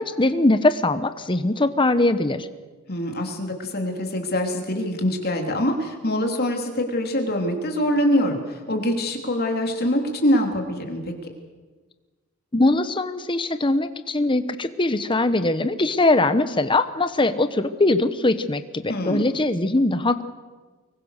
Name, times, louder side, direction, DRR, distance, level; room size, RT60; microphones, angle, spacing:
voice 1, 0.0-2.5 12.5-20.2, left 2 dB, 20° left, 10 dB, 1.1 m, -21 dB
voice 2, 2.9-11.1 18.9-19.3, equal, 45° left, 3 dB, 3.3 m, -24 dB
25.0 x 22.5 x 6.7 m, 1.4 s
head